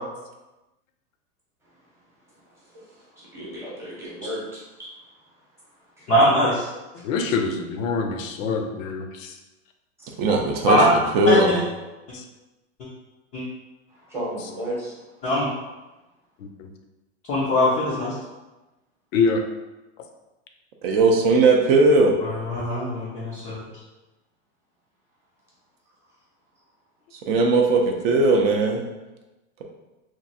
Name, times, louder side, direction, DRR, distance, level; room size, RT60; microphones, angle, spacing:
voice 1, 2.7-4.9 6.0-6.1 10.0-10.1 13.9-14.9, right 1 dB, 5° right, -7 dB, 0.8 m, -34 dB
voice 2, 6.1-6.7 10.3-10.4 10.7-10.9 11.3-11.6 13.3-13.4 15.2-15.5 17.3-18.1 22.2-23.6, left 1 dB, 20° left, -8 dB, 0.3 m, -21 dB
voice 3, 7.0-9.4 12.1-12.2 16.4-16.7 19.1-19.4, left 4 dB, 80° left, 5 dB, 0.6 m, -25 dB
voice 4, 10.2-11.5 20.8-22.2 27.3-28.8, right 3 dB, 50° right, 2 dB, 0.5 m, -18 dB
2.9 x 2.5 x 2.6 m, 1.1 s
supercardioid pair, 140°, 39 cm